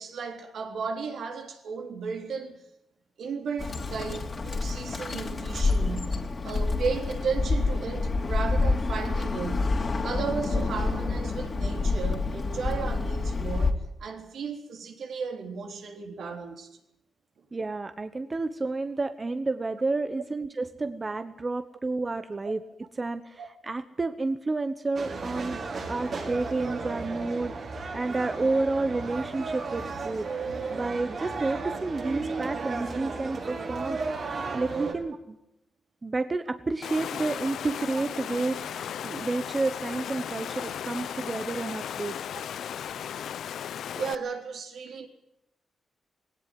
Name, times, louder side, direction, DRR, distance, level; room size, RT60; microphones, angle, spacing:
voice 1, 0.0-2.6 3.2-9.8 10.0-16.7 23.4-23.5 38.7-38.8 43.9-45.1, right 5 dB, 70° right, 3.8 m, -35 dB
Bird, 3.6-13.7, left 3 dB, 35° left, 3.0 m, -28 dB
voice 2, 17.5-22.6 23.0-25.6 25.9-30.3 30.7-34.0 34.5-35.4 36.0-42.2, right 3 dB, 25° right, 1.1 m, -30 dB
sound 1, 24.9-34.9, right 4 dB, 55° right, 5.9 m, -34 dB
Water, 36.8-44.1, left 9 dB, 80° left, 0.8 m, -36 dB
19.5 x 18.0 x 9.4 m
cardioid pair, 105°, 0 cm